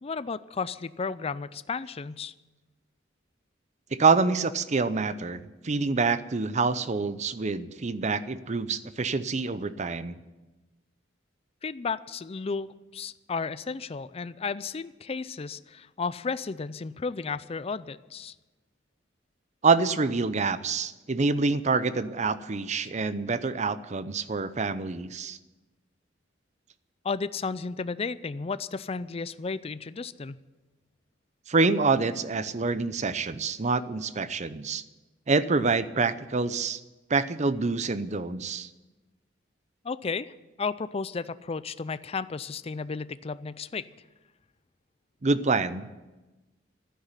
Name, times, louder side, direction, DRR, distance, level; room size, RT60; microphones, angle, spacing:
voice 1, 0.0-2.3 11.6-18.3 23.0-23.1 27.0-30.4 39.8-40.3 40.6-43.9, left 4 dB, 30° left, 15 dB, 0.4 m, -33 dB
voice 2, 3.9-10.2 19.6-25.4 31.5-34.8 35.3-36.8 37.1-38.7 45.2-45.9, right 4 dB, 40° right, 14 dB, 0.6 m, -26 dB
12.0 x 9.8 x 9.9 m, 1.1 s
head